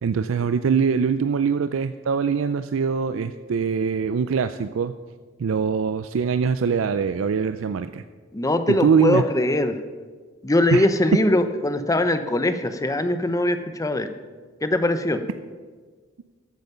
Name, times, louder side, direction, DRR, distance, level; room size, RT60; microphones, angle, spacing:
voice 1, 0.0-4.9 5.4-8.0 8.8-9.2 10.7-10.8, right 6 dB, 85° right, 11 dB, 0.4 m, -23 dB
voice 2, 8.3-9.8 10.4-14.1 14.6-15.2, left 1 dB, 15° left, 9 dB, 0.7 m, -21 dB
13.5 x 8.2 x 5.5 m, 1.5 s
head